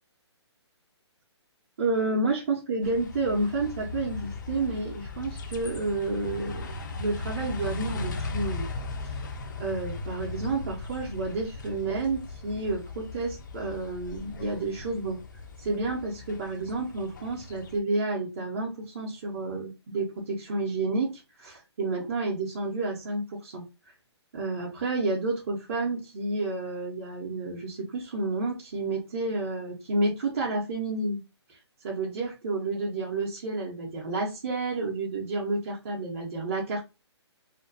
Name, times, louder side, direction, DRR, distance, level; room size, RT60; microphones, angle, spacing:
voice 1, 1.8-6.6 7.0-8.7 9.0-9.2 9.6-15.2 15.6-23.6 24.3-31.2 31.5-31.6 31.8-36.8, right 3 dB, 30° right, -4 dB, 0.5 m, -30 dB
sound 1, 2.8-17.8, left 3 dB, 40° left, 0.4 m, -38 dB
2.4 x 2.1 x 2.4 m, 0.27 s
hypercardioid pair, 160°, 15 cm